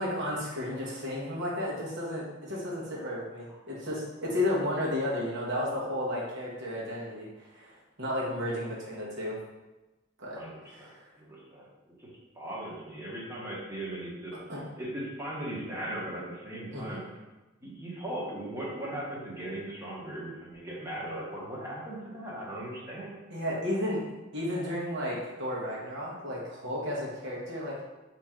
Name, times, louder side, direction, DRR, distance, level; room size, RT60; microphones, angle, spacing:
voice 1, 0.0-9.4 10.2-10.4 10.7-10.9 14.5-14.6 16.7-17.1 23.3-24.0 24.3-27.8, left 1 dB, 60° right, -4 dB, 1.2 m, -33 dB
voice 2, 10.3-11.7 12.0-12.1 12.3-14.3 14.8-17.0 17.6-23.1, right 1 dB, 15° right, -5 dB, 1.0 m, -38 dB
4.3 x 2.9 x 3.7 m, 1.1 s
head